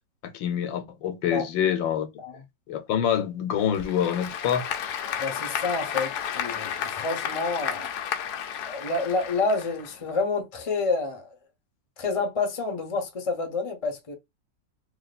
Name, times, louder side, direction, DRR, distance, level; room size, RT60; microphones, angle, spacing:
voice 1, 0.2-2.1 2.7-4.7, left 9 dB, 85° left, 1.5 m, -26 dB
Applause / Crowd, 3.6-10.2, left 8 dB, 70° left, 1.1 m, -32 dB
voice 2, 5.2-7.8 8.6-11.4 12.0-14.1, left 3 dB, 25° left, 0.7 m, -28 dB
3.0 x 2.8 x 4.1 m
omnidirectional pair, 2.0 m